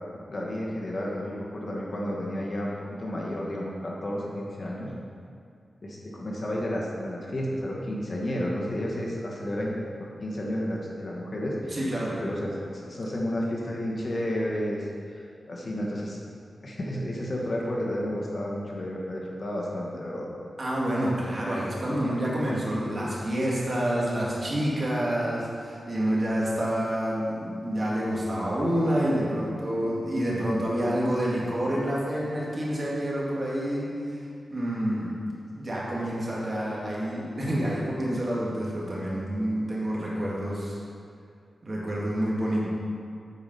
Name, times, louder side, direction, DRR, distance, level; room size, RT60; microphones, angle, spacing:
voice 1, 0.3-4.9 5.8-9.8 10.2-11.8 12.2-16.2 16.6-20.3, equal, 45° left, -3 dB, 1.5 m, -31 dB
voice 2, 11.7-12.2 20.6-34.2 34.5-35.1 35.5-40.8 41.6-42.7, equal, 40° right, -5 dB, 2.1 m, -28 dB
8.3 x 4.9 x 5.5 m, 2.3 s
wide cardioid pair, 80°, 0 cm